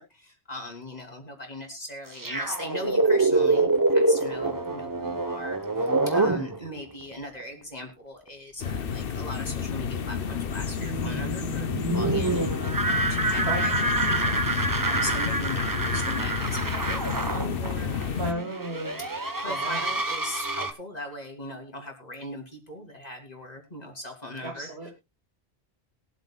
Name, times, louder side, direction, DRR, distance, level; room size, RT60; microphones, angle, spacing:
voice 1, 0.0-18.4 19.4-24.9, left 1 dB, 40° left, 3 dB, 3.2 m, -39 dB
sound 1, 2.1-7.1 7.4-7.5 9.8-20.7, right 2 dB, 20° right, 1.0 m, -26 dB
sound 2, 8.6-18.3, left 6 dB, 60° left, 0.9 m, -30 dB
voice 2, 13.4-13.7 18.2-19.0 19.5-19.8 24.4-24.9, right 2 dB, 75° right, 1 dB, 2.4 m, -34 dB
21.5 x 8.2 x 2.3 m, 0.24 s
omnidirectional pair, 1.1 m